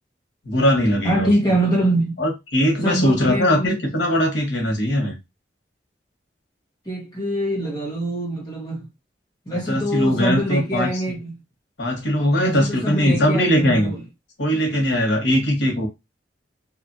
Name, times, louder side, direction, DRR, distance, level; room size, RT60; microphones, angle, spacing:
voice 1, 0.4-1.3 2.2-5.2 9.7-11.2 11.8-13.9 14.4-15.9, equal, 80° left, 1.2 m, -20 dB
voice 2, 1.0-2.2 2.8-3.8 6.8-8.9 9.5-11.3 12.4-14.0, right 1 dB, 20° left, 1.1 m, -24 dB
2.8 x 2.5 x 2.6 m
head